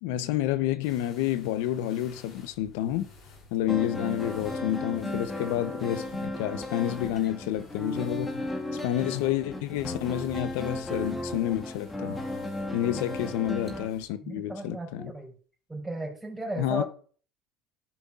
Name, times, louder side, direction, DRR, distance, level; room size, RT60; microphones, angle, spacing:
voice 1, 0.0-3.1 3.5-8.4 8.7-12.2 12.7-15.1 16.6-16.8, left 12 dB, 80° left, 0.7 m, -29 dB
sound 1, 0.8-14.1, left 4 dB, 60° left, 3.1 m, -53 dB
sound 2, 3.7-13.9, left 1 dB, 15° left, 1.7 m, -35 dB
voice 2, 14.2-15.3 15.7-16.8, right 1 dB, 10° right, 4.3 m, -35 dB
13.5 x 5.5 x 2.4 m
supercardioid pair, 100°, 0 cm